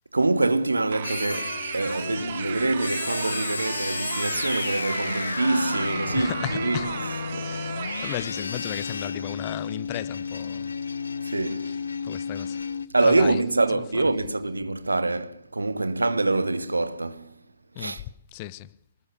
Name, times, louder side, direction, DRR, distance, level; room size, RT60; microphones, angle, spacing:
voice 1, 0.1-7.5 11.2-11.8 12.9-17.4 17.8-18.0, right 2 dB, 75° right, 1.9 m, -25 dB
sound 1, 0.9-8.2, right 10 dB, 45° right, 1.6 m, -36 dB
sound 2, 1.0-12.9, left 4 dB, 70° left, 1.3 m, -32 dB
voice 2, 6.1-6.9 7.4-10.8 11.7-11.8 12.0-12.7 13.0-13.4 13.7-14.1 17.7-18.7, left 15 dB, 30° left, 1.1 m, -35 dB
27.0 x 20.0 x 8.4 m
figure-of-eight pair, 125°, 0 cm